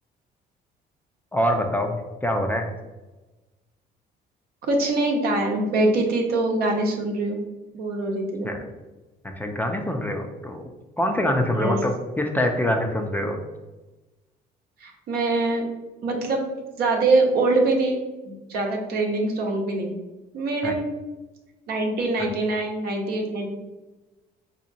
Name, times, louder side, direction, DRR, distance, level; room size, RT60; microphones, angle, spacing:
voice 1, 1.3-2.7 8.4-8.6 9.2-10.6 11.0-13.4 20.6-20.7 22.2-22.3, equal, 10° left, 3 dB, 0.4 m, -25 dB
voice 2, 4.7-7.4 7.7-8.5 11.6-11.8 14.8-15.6 16.0-16.5 16.8-20.0 20.3-20.9 21.7-23.5, right 2 dB, 65° right, 2 dB, 0.8 m, -24 dB
4.0 x 2.8 x 2.6 m, 1.1 s
cardioid pair, 110°, 17 cm